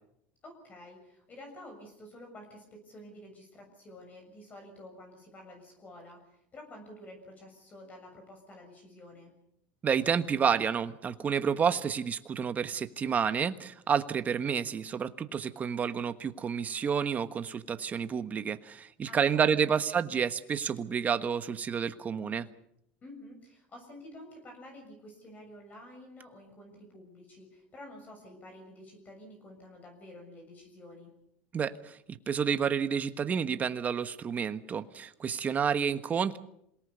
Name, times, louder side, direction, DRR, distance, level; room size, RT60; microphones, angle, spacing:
voice 1, 0.4-9.3 19.1-19.8 23.0-31.1, left 1 dB, 30° left, 3 dB, 7.0 m, -50 dB
voice 2, 9.8-22.5 31.5-36.4, right 7 dB, 30° right, 11 dB, 1.4 m, -30 dB
27.0 x 18.5 x 6.9 m, 0.77 s
supercardioid pair, 115°, 5 cm